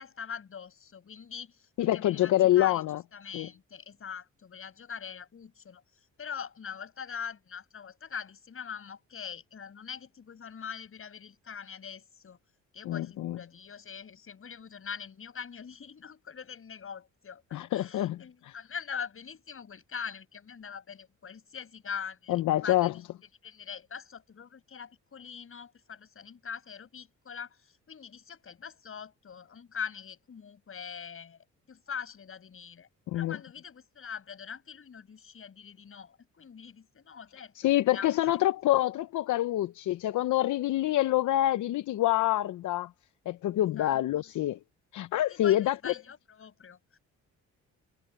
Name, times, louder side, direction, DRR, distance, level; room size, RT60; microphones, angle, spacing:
voice 1, 0.0-12.4 12.7-23.0 23.4-37.5 37.9-38.1 43.6-44.0 45.3-47.0, left 7 dB, 45° left, 7.4 m, -43 dB
voice 2, 1.8-3.0 3.3-3.5 12.8-13.4 17.5-18.2 18.4-18.5 22.3-22.9 33.1-33.4 37.6-42.9 43.3-44.6 44.9-45.9, left 14 dB, 75° left, 0.9 m, -26 dB
cardioid pair, 90°, 30 cm